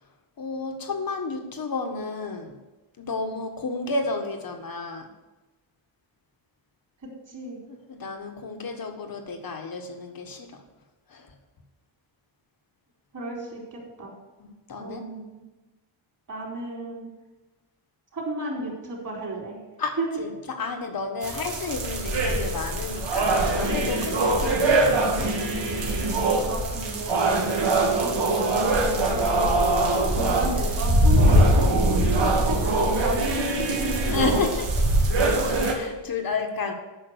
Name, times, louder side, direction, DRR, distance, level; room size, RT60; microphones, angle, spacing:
voice 1, 0.4-2.5 3.0-5.1 7.9-10.6 11.1-11.3 14.4-15.0 19.8-25.3 34.1-34.9 35.7-36.7, left 3 dB, 45° left, 5 dB, 1.6 m, -31 dB
voice 2, 7.3-7.6 13.1-14.1 14.8-15.4 16.3-17.1 18.1-19.6 20.0-20.2 26.5-27.3 27.6-33.9, right 2 dB, 40° right, -2 dB, 4.1 m, -33 dB
sound 1, 21.2-35.7, right 1 dB, 60° right, 2.3 m, -22 dB
9.5 x 5.8 x 8.0 m, 1.1 s
cardioid pair, 95°, 49 cm